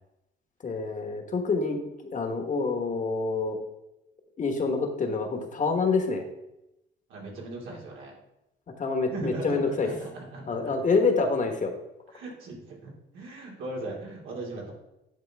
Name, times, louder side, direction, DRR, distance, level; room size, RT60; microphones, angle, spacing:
voice 1, 0.6-3.6 4.4-6.2 8.8-9.9 10.5-11.7, left 4 dB, 40° left, 4 dB, 1.3 m, -27 dB
voice 2, 7.1-8.1 9.1-10.7 12.1-14.7, right 2 dB, 85° right, -3 dB, 2.4 m, -38 dB
9.9 x 4.5 x 3.5 m, 0.90 s
cardioid pair, 90°, 20 cm